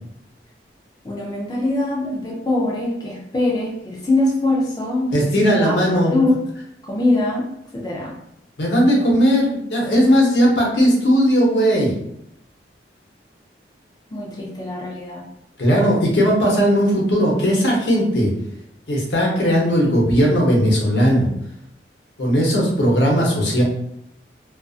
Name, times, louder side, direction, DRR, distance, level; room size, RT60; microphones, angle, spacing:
voice 1, 1.0-6.4 6.8-8.2 8.9-9.1 14.1-15.3, left 2 dB, 20° left, -3 dB, 0.4 m, -23 dB
voice 2, 5.1-6.2 8.6-11.9 15.6-18.3 18.9-21.3 22.2-23.6, equal, 80° left, -2 dB, 0.8 m, -17 dB
2.5 x 2.3 x 2.3 m, 0.79 s
head